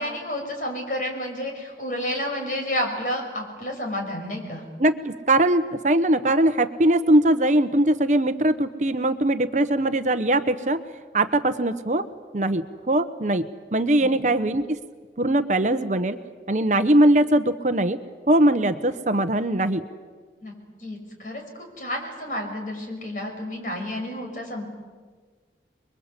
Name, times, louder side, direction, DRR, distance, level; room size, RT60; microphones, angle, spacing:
voice 1, 0.0-4.6 14.0-14.1 20.4-20.5 20.8-21.4 21.8-24.6, left 1 dB, 45° left, 2 dB, 6.0 m, -30 dB
voice 2, 4.8-10.8 11.1-12.0 12.3-14.8 15.2-16.2 16.5-18.0 18.3-19.8, right 1 dB, 45° right, 9 dB, 0.9 m, -21 dB
28.0 x 22.0 x 8.2 m, 1.5 s
head